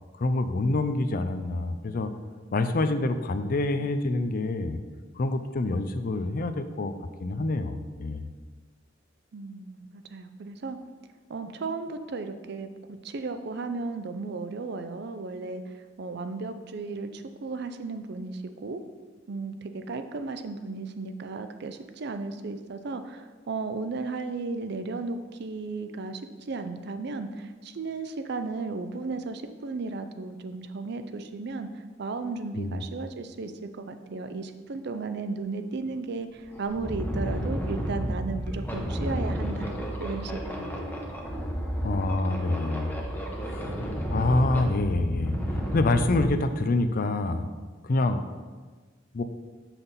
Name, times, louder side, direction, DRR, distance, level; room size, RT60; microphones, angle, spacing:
voice 1, 0.2-2.1 2.5-4.8 5.2-6.9 7.2-8.3 32.5-32.8 41.8-43.0 43.5-43.7 44.1-47.5 47.8-48.2 49.1-49.2, left 2 dB, 50° left, 9 dB, 0.5 m, -26 dB
voice 2, 9.3-10.8 11.3-18.8 19.3-39.7 40.0-40.7, right 3 dB, 60° right, 9 dB, 0.5 m, -35 dB
sound 1, 35.9-36.0 36.4-46.3, equal, 10° left, 0.9 m, -31 dB
7.0 x 5.8 x 4.1 m, 1.4 s
head